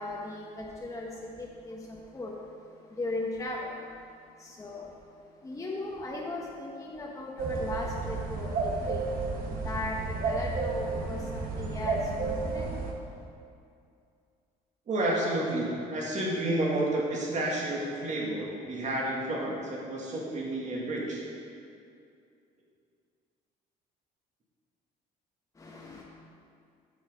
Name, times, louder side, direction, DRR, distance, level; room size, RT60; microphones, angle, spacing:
voice 1, 0.0-2.3 3.0-3.7 4.4-4.9 5.4-9.0 9.6-12.7 25.6-26.0, left 2 dB, 20° left, -3 dB, 1.0 m, -37 dB
sound 1, 7.4-12.9, right 3 dB, 60° right, 1.1 m, -32 dB
voice 2, 14.9-21.2, right 1 dB, 45° right, -3 dB, 2.2 m, -30 dB
8.2 x 6.3 x 5.1 m, 2.5 s
cardioid pair, 110°, 17 cm